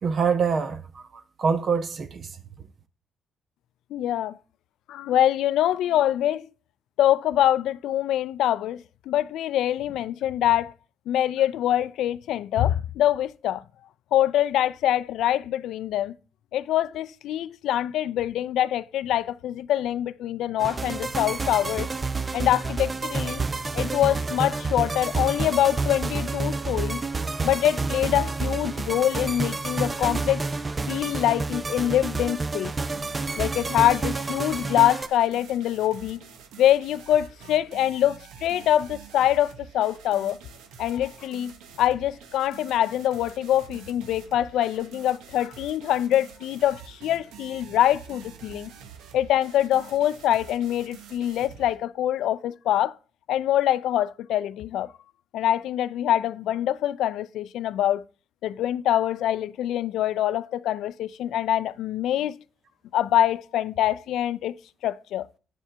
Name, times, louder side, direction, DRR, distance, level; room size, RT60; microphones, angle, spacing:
voice 1, 0.0-2.4, right 5 dB, 50° right, 1.0 m, -25 dB
voice 2, 3.9-4.4 4.9-6.5 7.0-10.7 11.1-13.6 14.1-16.1 16.5-21.9 22.3-23.4 23.7-27.0 27.4-30.4 30.9-32.7 33.4-36.2 36.6-40.4 40.8-41.5 41.8-48.7 49.1-52.9 53.3-54.9 55.3-58.0 58.4-62.3 62.9-64.5 64.8-65.2, left 12 dB, 80° left, 0.3 m, -24 dB
sound 1, 20.6-35.1, right 3 dB, 25° right, 0.5 m, -29 dB
sound 2, 32.6-51.8, right 8 dB, 90° right, 1.0 m, -47 dB
8.9 x 7.3 x 3.3 m
cardioid pair, 90°, 0 cm